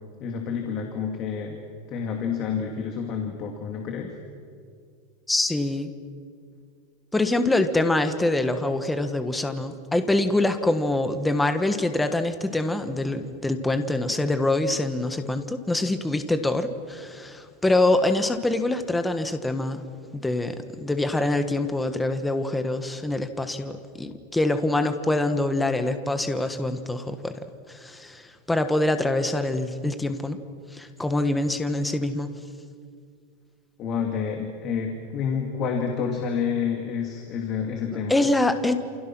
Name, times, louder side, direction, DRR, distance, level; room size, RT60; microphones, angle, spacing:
voice 1, 0.2-1.6 1.9-4.2 33.8-38.3, left 6 dB, 30° left, 3 dB, 2.6 m, -29 dB
voice 2, 5.3-5.9 7.1-19.8 20.1-27.3 27.7-28.2 28.5-30.4 30.7-32.3 37.9-38.7, left 2 dB, 5° left, 8 dB, 1.4 m, -25 dB
29.5 x 28.5 x 6.2 m, 2.2 s
supercardioid pair, 170°, 0 cm